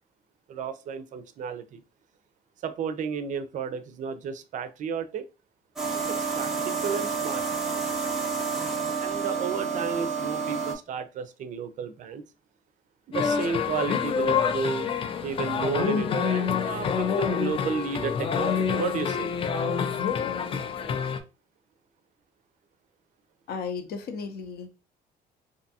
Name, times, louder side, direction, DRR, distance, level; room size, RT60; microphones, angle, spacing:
voice 1, 0.5-1.8 2.6-5.3 6.1-7.5 9.0-12.2 13.1-14.9 15.2-19.3, right 6 dB, 50° right, 12 dB, 0.4 m, -32 dB
sound 1, 5.8-10.7, right 5 dB, ahead, 0.7 m, -29 dB
sound 2, 13.1-21.2, left 7 dB, 35° left, 0.3 m, -27 dB
voice 2, 23.5-24.7, left 5 dB, 70° left, 7 dB, 0.6 m, -34 dB
2.6 x 2.3 x 2.6 m, 0.31 s
cardioid pair, 110°, 17 cm